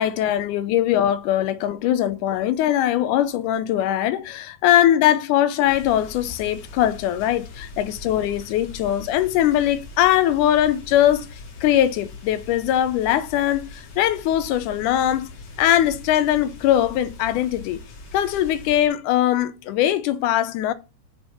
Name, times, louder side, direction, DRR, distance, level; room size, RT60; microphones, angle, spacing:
voice 1, 0.0-11.3 11.6-15.3 15.6-17.8 18.1-20.7, left 12 dB, 85° left, 2.2 m, -21 dB
sound 1, 5.7-18.9, left 3 dB, 60° left, 2.6 m, -41 dB
7.6 x 4.4 x 4.3 m
omnidirectional pair, 3.6 m